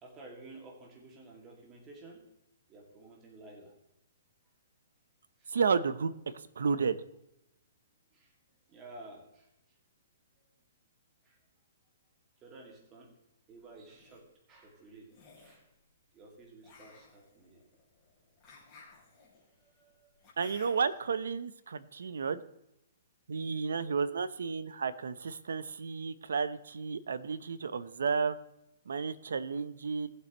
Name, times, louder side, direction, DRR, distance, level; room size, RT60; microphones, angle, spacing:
voice 1, 0.0-2.2 2.7-3.8 5.4-5.5 8.1-9.8 11.2-11.4 12.4-13.2 13.5-15.7 16.1-17.6 19.4-20.2, right 2 dB, 20° right, 0 dB, 2.2 m, -53 dB
voice 2, 5.5-6.1 6.6-7.0 20.4-22.4 23.3-28.4 28.9-30.1, right 5 dB, 90° right, 14 dB, 0.8 m, -32 dB
sound 1, 13.7-14.2 15.1-15.6 16.6-21.0, left 4 dB, 15° left, 3.6 m, -57 dB
18.5 x 7.8 x 3.1 m, 0.86 s
hypercardioid pair, 165°, 0 cm